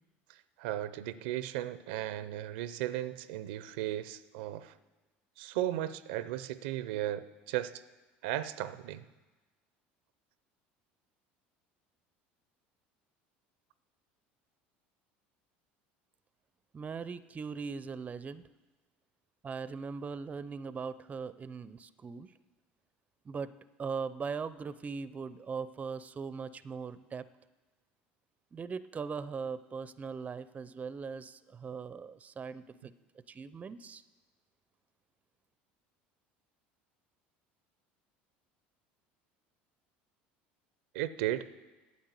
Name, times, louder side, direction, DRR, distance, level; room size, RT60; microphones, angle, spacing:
voice 1, 0.3-4.7 5.4-7.8 8.2-9.0 40.9-41.5, right 13 dB, 80° right, 15 dB, 0.5 m, -36 dB
voice 2, 16.7-18.5 19.4-22.3 23.3-23.5 23.8-27.3 28.5-32.9 33.3-34.0, right 5 dB, 25° right, 16 dB, 0.5 m, -40 dB
9.4 x 8.5 x 8.1 m, 1.2 s
supercardioid pair, 90°, 5 cm